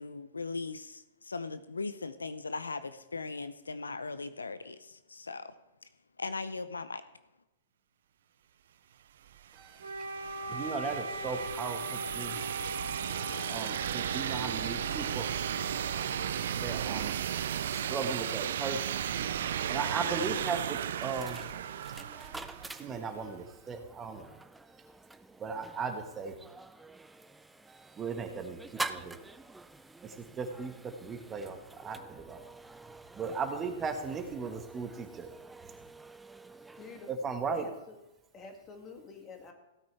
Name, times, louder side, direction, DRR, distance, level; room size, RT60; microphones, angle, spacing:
voice 1, 0.0-5.5 6.2-7.0, left 3 dB, 90° left, 13 dB, 0.7 m, -39 dB
sound 1, 9.3-23.1, right 9 dB, 65° right, 0.5 m, -35 dB
voice 2, 9.5-9.8 10.5-12.4 13.5-15.3 16.6-17.1 17.7-18.9 19.7-21.5 22.7-24.3 25.4-26.4 27.7-28.6 28.9-29.2 30.0-32.4 33.1-35.3 37.1-37.7, right 5 dB, 20° right, 5 dB, 1.5 m, -37 dB
Wind instrument woodwind instrument, 9.8-17.9, right 2 dB, 85° right, 2.7 m, -41 dB
sound 2, 20.0-37.1, right 2 dB, 5° right, 0.5 m, -47 dB
voice 3, 36.7-38.0 38.3-39.5, left 4 dB, 25° left, 3 dB, 2.4 m, -49 dB
16.5 x 9.0 x 3.4 m, 0.97 s
hypercardioid pair, 110°, 0 cm